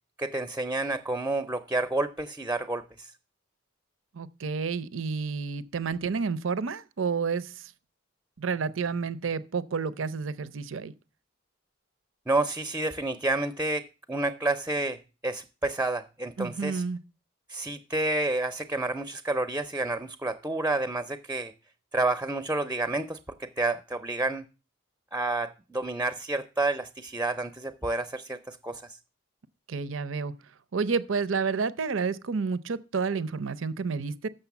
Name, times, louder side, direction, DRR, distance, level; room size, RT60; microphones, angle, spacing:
voice 1, 0.2-3.1 12.3-16.8 17.5-21.5 21.9-24.4 25.1-29.0, right 2 dB, 10° right, 0.5 m, -30 dB
voice 2, 4.1-7.5 8.4-10.9 16.4-17.0 29.7-30.3 30.7-34.3, right 5 dB, 80° right, 0.6 m, -30 dB
6.7 x 6.5 x 7.0 m
head